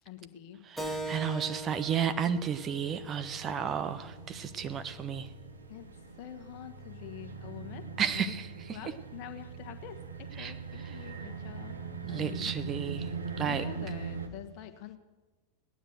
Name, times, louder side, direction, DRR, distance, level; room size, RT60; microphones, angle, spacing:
voice 1, 0.0-0.7 5.7-7.9 8.1-8.3 8.7-11.8 12.1-12.5 13.4-15.0, left 10 dB, 45° left, 7 dB, 1.5 m, -45 dB
voice 2, 0.7-5.3 8.0-8.8 10.4-10.5 12.0-13.6, right 7 dB, 25° right, 10 dB, 0.9 m, -33 dB
Keyboard (musical), 0.8-5.9, right 2 dB, ahead, 2.0 m, -42 dB
sound 1, 0.9-14.3, right 5 dB, 75° right, 1.5 m, -42 dB
17.5 x 10.0 x 7.9 m, 1.2 s
figure-of-eight pair, 90°, 0 cm